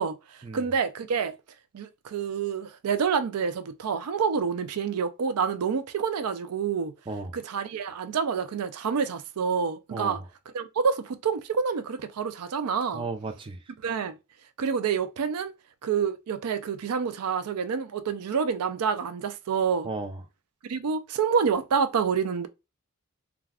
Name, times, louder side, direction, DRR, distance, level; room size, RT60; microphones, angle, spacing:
voice 1, 0.0-1.4 1.7-6.9 7.3-10.2 10.5-13.0 13.8-14.2 14.6-15.5 15.8-19.9 20.7-22.5, right 6 dB, 90° right, 0.4 m, -28 dB
voice 2, 7.1-7.4 9.9-10.3 12.9-13.6 19.8-20.2, right 3 dB, 25° right, 0.4 m, -34 dB
2.3 x 2.3 x 3.4 m
head